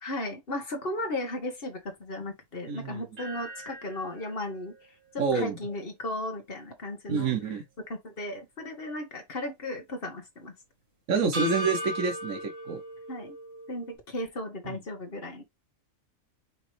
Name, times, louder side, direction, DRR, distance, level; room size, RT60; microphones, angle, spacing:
voice 1, 0.0-4.7 5.1-7.3 7.9-10.5 13.1-13.4 13.7-15.4, left 1 dB, 45° left, 1.5 m, -35 dB
voice 2, 2.7-3.1 5.2-5.6 7.1-7.6 11.1-12.8 14.7-14.8, right 5 dB, 75° right, 1.3 m, -28 dB
sound 1, 3.2-7.4 7.8-7.9 11.3-14.0, equal, 50° right, 2.2 m, -39 dB
5.1 x 3.0 x 3.2 m
omnidirectional pair, 1.4 m